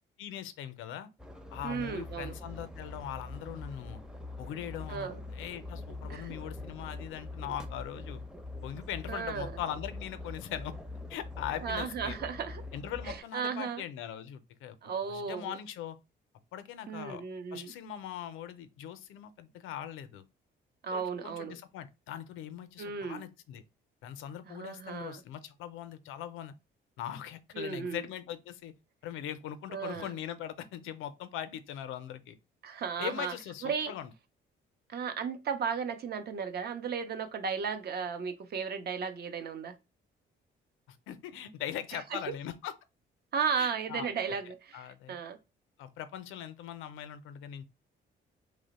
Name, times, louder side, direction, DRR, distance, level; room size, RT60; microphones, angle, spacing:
voice 1, 0.2-1.1 1.5-4.0 4.4-8.2 8.6-10.7 11.1-12.2 12.7-14.8 15.1-16.0 16.5-17.2 17.5-20.3 20.9-23.6 24.0-26.5 27.0-28.7 29.0-32.4 33.0-34.1 40.9-42.7 43.6-44.1 44.7-45.2 45.8-47.7, left 10 dB, 90° left, 0.5 m, -41 dB
sound 1, 1.2-13.2, left 2 dB, 5° right, 0.5 m, -43 dB
voice 2, 1.6-2.3 4.9-5.2 6.1-6.4 9.1-9.6 11.6-12.6 13.0-13.8 14.8-15.6 16.9-17.7 20.8-21.6 22.8-23.3 24.5-25.2 27.5-28.1 29.7-30.1 32.6-33.3 33.6-33.9 34.9-39.7 41.9-42.2 43.3-45.4, right 6 dB, 55° right, 0.6 m, -35 dB
2.9 x 2.0 x 3.9 m
cardioid pair, 90°, 20 cm